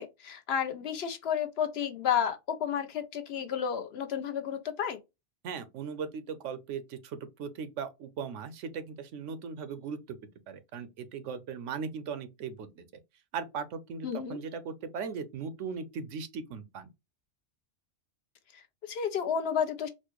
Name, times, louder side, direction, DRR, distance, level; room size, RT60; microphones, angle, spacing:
voice 1, 0.0-5.0 14.0-14.4 18.5-19.9, left 8 dB, 65° left, 0.8 m, -31 dB
voice 2, 5.4-10.2 10.5-12.9 13.3-16.9, right 6 dB, 90° right, 1.0 m, -38 dB
4.2 x 2.1 x 3.0 m
omnidirectional pair, 1.2 m